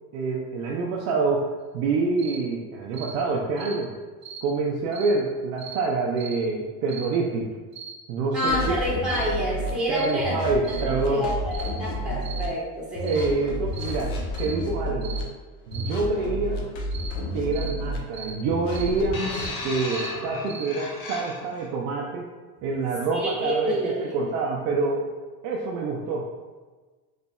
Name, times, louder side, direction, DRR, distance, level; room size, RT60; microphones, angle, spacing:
voice 1, 0.1-3.9 4.4-7.5 8.1-8.8 9.9-11.3 13.0-15.2 15.7-16.6 17.3-19.2 19.6-22.3 22.6-25.1 25.4-26.3, right 3 dB, 70° right, -1 dB, 0.6 m, -26 dB
sound 1, 2.2-2.4 2.9-3.1 3.6-3.8 4.2-4.4 4.9-5.1 5.6-5.8 6.2-6.4 6.9-7.1 7.7-7.9 8.4-8.6 9.1-9.3 9.9-10.2 10.6-10.9 11.5-11.7 12.2-12.4 13.0-13.3 13.7-13.9 14.3-14.6 15.0-15.2 15.7-15.9 16.9-17.1 17.5-17.7 18.1-18.4 18.7-18.9 19.3-19.5 19.9-20.1 20.5-20.7, right 7 dB, 35° right, 0.9 m, -39 dB
voice 2, 8.3-10.3 10.7-13.2 23.1-24.1, equal, ahead, -8 dB, 1.3 m, -28 dB
sound 2, 8.5-9.7 10.2-12.5 12.9-15.2 15.7-18.0 18.5-19.5, equal, 70° left, 0.9 m, -31 dB
sound 3, 19.1-21.7 22.6-22.8, left 2 dB, 50° left, 1.0 m, -35 dB
4.0 x 3.2 x 2.3 m, 1.3 s
supercardioid pair, 115°, 46 cm